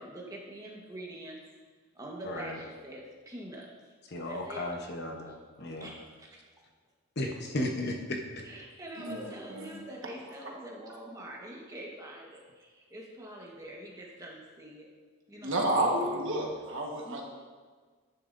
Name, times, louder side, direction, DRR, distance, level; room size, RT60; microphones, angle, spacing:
voice 1, 0.0-1.4 1.9-3.9 4.2-4.7 5.8-6.4 8.4-14.9 15.3-15.9 17.0-17.2, right 1 dB, 15° right, -2 dB, 1.3 m, -45 dB
voice 2, 2.2-2.6 4.1-5.9 7.2-8.4 16.3-16.5, left 1 dB, 45° left, 2 dB, 1.0 m, -35 dB
voice 3, 9.0-9.8 15.4-17.2, right 1 dB, 55° right, -1 dB, 1.5 m, -31 dB
10.5 x 9.8 x 2.7 m, 1.5 s
head